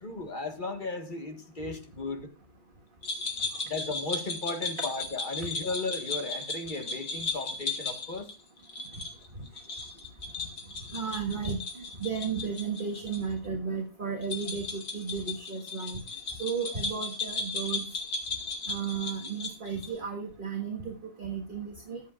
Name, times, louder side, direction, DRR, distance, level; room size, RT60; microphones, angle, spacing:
voice 1, 0.0-2.3 3.6-8.3, left 3 dB, 30° left, 5 dB, 1.5 m, -35 dB
sound 1, 3.0-13.2 13.4-13.5 14.2-20.0, left 3 dB, 70° left, 2.9 m, -36 dB
voice 2, 10.9-16.0 16.4-17.8 18.7-22.0, right 6 dB, 30° right, 1 dB, 1.6 m, -34 dB
22.5 x 8.2 x 2.4 m, 0.34 s
omnidirectional pair, 1.8 m